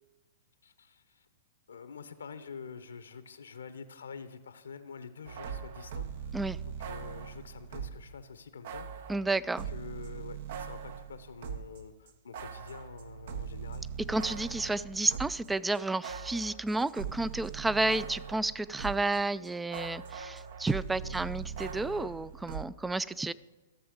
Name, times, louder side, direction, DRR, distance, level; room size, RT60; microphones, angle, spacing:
voice 1, 0.6-1.0 1.7-6.3 6.8-8.9 9.7-13.9 21.0-21.2, left 5 dB, 75° left, 12 dB, 0.8 m, -46 dB
sound 1, 5.3-8.1 8.6-11.8 12.1-19.2 19.4-22.6, right 7 dB, 60° right, 0.7 m, -41 dB
voice 2, 9.1-9.7 14.1-23.3, right 2 dB, 10° right, 18 dB, 0.3 m, -31 dB
14.5 x 7.0 x 5.1 m, 1.2 s
figure-of-eight pair, 110°, 0 cm